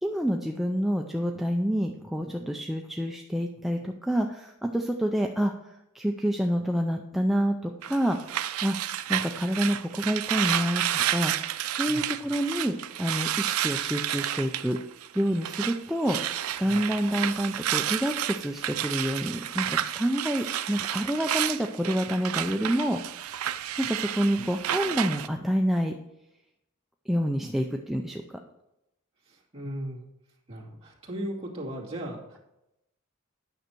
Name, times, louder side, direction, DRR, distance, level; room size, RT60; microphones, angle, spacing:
voice 1, 0.0-8.2 8.6-8.8 9.1-14.8 15.2-16.2 16.6-23.4 23.8-25.9 27.1-28.4, equal, ahead, 2 dB, 0.4 m, -28 dB
sound 1, 7.8-25.3, right 11 dB, 80° right, 0.5 m, -31 dB
voice 2, 29.2-30.0 30.5-32.4, equal, 30° right, -5 dB, 2.4 m, -37 dB
9.4 x 6.5 x 4.5 m, 0.88 s
head